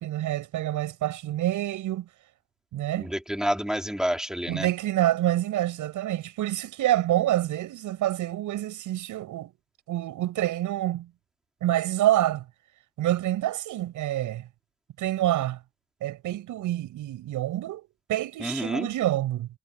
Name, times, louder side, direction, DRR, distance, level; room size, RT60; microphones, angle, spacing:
voice 1, 0.0-2.1 2.7-3.1 4.5-9.5 9.9-11.1 11.6-12.4 13.0-14.4 15.0-15.6 16.0-17.8 18.1-19.5, right 14 dB, 85° right, 7.4 m, -27 dB
voice 2, 3.0-4.7 18.4-18.9, equal, ahead, 3.1 m, -29 dB
cardioid pair, 90°, 30 cm